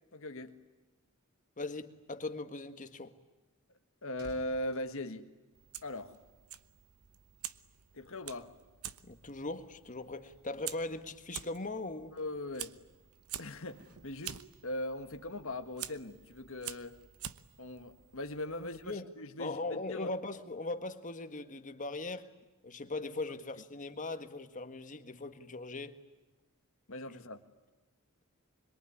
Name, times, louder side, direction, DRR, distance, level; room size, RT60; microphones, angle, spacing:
voice 1, 0.1-0.5 4.0-5.3 5.8-6.2 7.9-8.5 12.1-12.8 13.4-17.0 17.6-20.2 26.9-27.4, left 1 dB, 65° left, 1.7 m, -40 dB
voice 2, 1.6-3.1 9.0-12.1 18.6-19.1 19.4-22.3 22.6-26.0, left 2 dB, 35° left, 1.6 m, -40 dB
sound 1, 3.7-6.1 6.4-6.7, right 1 dB, 50° right, 5.1 m, -57 dB
Fire, 5.5-18.9, right 11 dB, 85° right, 1.0 m, -48 dB
26.0 x 22.5 x 9.8 m
head